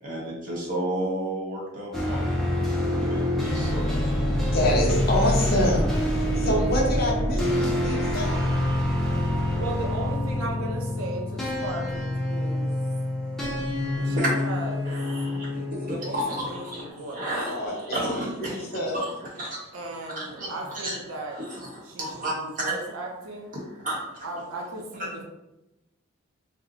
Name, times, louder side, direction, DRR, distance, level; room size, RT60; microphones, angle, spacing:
voice 1, 0.0-2.3 3.0-3.2 3.5-4.0 6.3-6.6 14.1-14.3 14.8-19.7 20.1-22.9 23.5-24.3, right 1 dB, 40° right, -4 dB, 0.8 m, -32 dB
sound 1, 1.9-16.9, left 1 dB, ahead, 0.4 m, -26 dB
voice 2, 4.5-5.9 6.4-8.4 17.5-18.0 18.5-19.0, left 1 dB, 45° left, -2 dB, 0.7 m, -26 dB
voice 3, 9.5-13.1 13.9-15.0 15.9-16.2 16.5-17.3 19.7-21.4 21.8-23.5 24.2-25.2, right 1 dB, 85° right, 0 dB, 0.6 m, -36 dB
2.6 x 2.1 x 3.8 m, 0.92 s
head